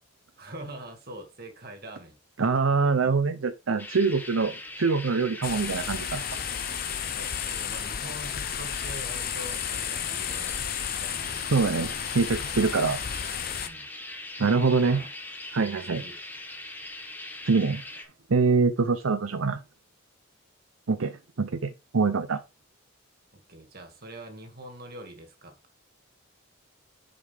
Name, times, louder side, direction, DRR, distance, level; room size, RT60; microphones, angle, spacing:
voice 1, 0.4-2.2 7.1-11.5 13.5-13.9 14.8-15.1 15.9-16.2 23.5-25.6, right 1 dB, 50° right, 2.2 m, -44 dB
voice 2, 2.4-6.2 11.5-13.0 14.4-15.0 15.5-16.0 17.5-17.8 18.3-19.6 20.9-22.4, right 4 dB, 80° right, 0.7 m, -24 dB
sound 1, 3.8-18.0, left 2 dB, 10° left, 1.4 m, -41 dB
sound 2, 5.4-13.7, left 9 dB, 45° left, 0.6 m, -33 dB
10.0 x 5.3 x 3.5 m
head